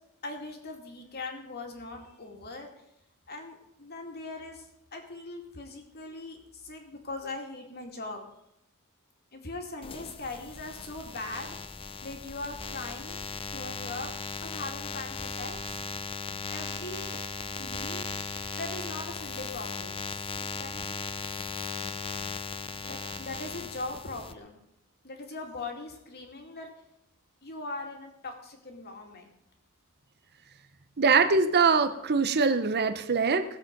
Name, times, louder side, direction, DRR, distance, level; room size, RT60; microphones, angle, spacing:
voice 1, 0.2-2.7 3.3-4.7 4.9-8.3 9.3-11.6 12.0-14.1 14.4-15.8 16.5-17.2 17.6-18.0 18.6-20.0 20.5-21.0 22.8-24.6 25.0-26.7 27.4-29.3, left 2 dB, 45° left, 3 dB, 2.4 m, -40 dB
sound 1, 9.8-24.3, left 4 dB, 25° left, 0.6 m, -37 dB
voice 2, 31.0-33.4, right 4 dB, 45° right, 9 dB, 0.8 m, -23 dB
17.5 x 7.6 x 5.3 m, 0.78 s
head